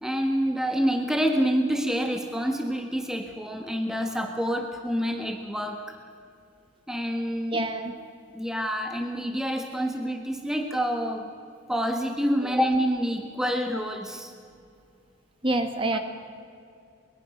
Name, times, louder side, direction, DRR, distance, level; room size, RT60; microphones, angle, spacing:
voice 1, 0.0-6.0 6.9-7.7 8.3-11.3 11.7-14.3 15.9-16.0, equal, 5° right, 3 dB, 1.5 m, -27 dB
voice 2, 7.5-7.9 15.4-16.0, right 2 dB, 25° right, 7 dB, 1.7 m, -26 dB
23.5 x 21.5 x 6.6 m, 2.4 s
head